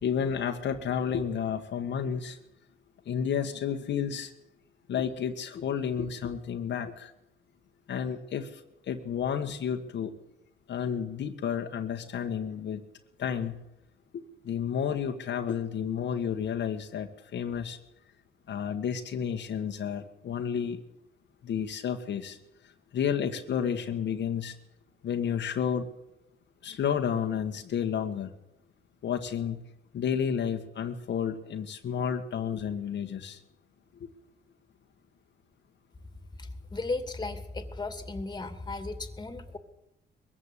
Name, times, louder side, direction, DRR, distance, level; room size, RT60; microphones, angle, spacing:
voice 1, 0.0-2.4 3.0-4.3 4.9-7.1 7.9-8.6 8.9-10.1 10.7-12.8 13.2-13.6 14.1-17.8 18.5-20.8 21.4-22.4 22.9-24.6 25.0-25.9 26.6-28.3 29.0-29.6 29.9-33.4, left 8 dB, 65° left, 5 dB, 1.7 m, -31 dB
voice 2, 36.4-39.6, left 3 dB, 20° left, 9 dB, 2.5 m, -35 dB
21.5 x 15.5 x 8.4 m, 0.90 s
cardioid pair, 90°, 20 cm